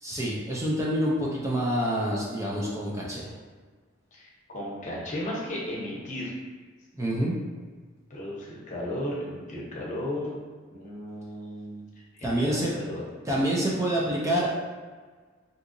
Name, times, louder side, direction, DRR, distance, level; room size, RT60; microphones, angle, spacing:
voice 1, 0.0-3.3 6.9-7.4 12.2-12.7 13.3-14.7, right 1 dB, 15° right, -4 dB, 0.4 m, -27 dB
voice 2, 4.1-6.3 8.1-10.4 10.7-11.8 12.1-13.0, left 1 dB, 40° left, -4 dB, 0.8 m, -35 dB
3.6 x 2.8 x 2.5 m, 1.5 s
head